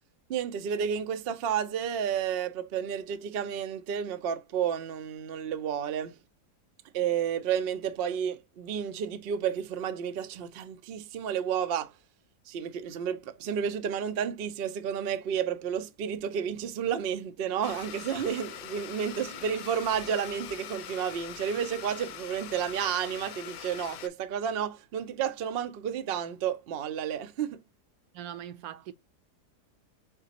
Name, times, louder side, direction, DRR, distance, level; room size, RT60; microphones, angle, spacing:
voice 1, 0.3-6.2 6.9-11.9 12.5-27.6, right 8 dB, 85° right, 0.5 m, -31 dB
Domestic sounds home sounds, 17.6-24.1, left 10 dB, 70° left, 0.9 m, -43 dB
voice 2, 28.1-28.9, right 10 dB, 70° right, 1.0 m, -41 dB
4.0 x 3.9 x 2.8 m
omnidirectional pair, 1.7 m